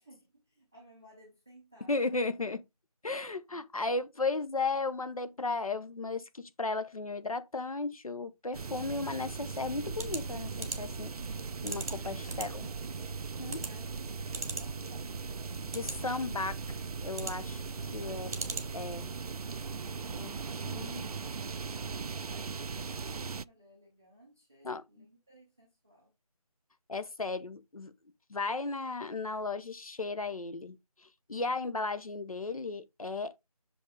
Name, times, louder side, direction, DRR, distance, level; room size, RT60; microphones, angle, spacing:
voice 1, 0.0-2.0 11.9-13.1 13.5-16.0 17.8-18.5 21.4-26.1, right 1 dB, 5° right, 0.5 m, -59 dB
voice 2, 1.9-2.6 3.0-11.1 11.6-12.7 13.4-13.6 15.7-17.6 17.9-18.4 18.7-19.1 20.1-20.4 20.6-21.1 24.6-24.8 26.9-27.9 28.3-30.8 31.0-33.3, left 3 dB, 65° left, 1.0 m, -35 dB
sound 1, 8.5-23.4, right 5 dB, 75° right, 0.4 m, -39 dB
sound 2, 9.8-19.0, right 3 dB, 25° right, 0.9 m, -42 dB
6.5 x 5.2 x 3.7 m
figure-of-eight pair, 165°, 19 cm